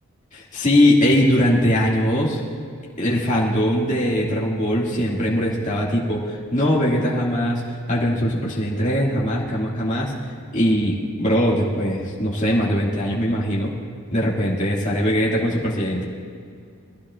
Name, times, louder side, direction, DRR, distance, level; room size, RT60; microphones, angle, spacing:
voice 1, 0.3-2.4 3.0-7.6 7.9-10.1 10.5-13.7 14.1-16.0, equal, 35° left, -5 dB, 2.2 m, -21 dB
22.5 x 15.5 x 2.5 m, 2.3 s
head